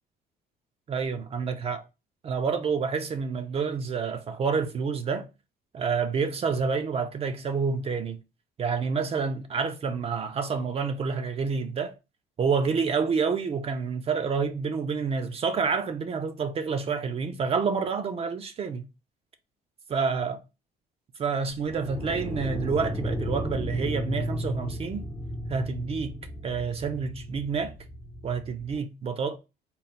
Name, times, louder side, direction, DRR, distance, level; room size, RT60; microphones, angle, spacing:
voice 1, 0.9-1.8 2.2-5.3 5.7-8.2 8.6-11.9 12.4-18.8 19.9-20.4 21.2-25.1 25.5-26.2 26.4-27.7 28.2-29.4, right 5 dB, 35° right, 0.5 m, -28 dB
sound 1, 21.5-28.8, equal, 10° left, 0.6 m, -34 dB
3.8 x 2.1 x 4.1 m
cardioid pair, 110°, 17 cm